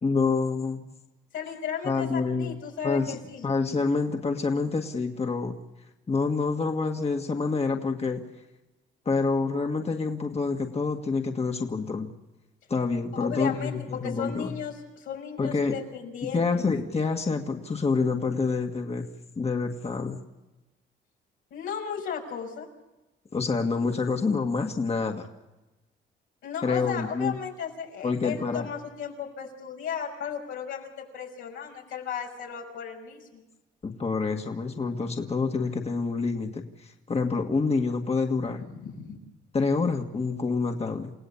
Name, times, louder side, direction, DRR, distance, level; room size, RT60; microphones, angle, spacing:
voice 1, 0.0-0.9 1.8-2.6 2.8-3.2 3.4-5.5 6.1-8.2 9.1-12.1 12.7-14.5 15.4-15.7 16.3-19.1 19.4-20.2 23.3-25.3 26.6-27.4 28.0-28.7 33.8-38.6 39.5-41.1, left 4 dB, 30° left, 3 dB, 1.9 m, -27 dB
voice 2, 1.3-3.5 13.2-16.4 21.5-22.7 26.4-33.4 38.6-39.2, left 8 dB, 90° left, 0 dB, 6.0 m, -35 dB
29.5 x 17.0 x 7.2 m, 1.0 s
cardioid pair, 90°, 20 cm